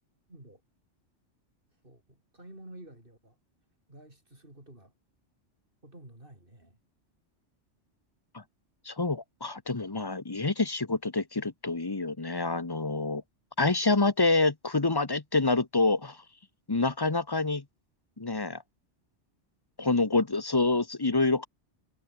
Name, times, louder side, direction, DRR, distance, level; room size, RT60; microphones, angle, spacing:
voice 1, 0.3-0.6 1.8-3.4 3.9-4.9 5.8-6.8, right 1 dB, 45° right, 6.9 m, -50 dB
voice 2, 8.9-13.2 13.6-16.2 16.7-17.6 18.2-18.6 19.8-21.5, left 3 dB, 20° left, 1.0 m, -27 dB
omnidirectional pair, 1.2 m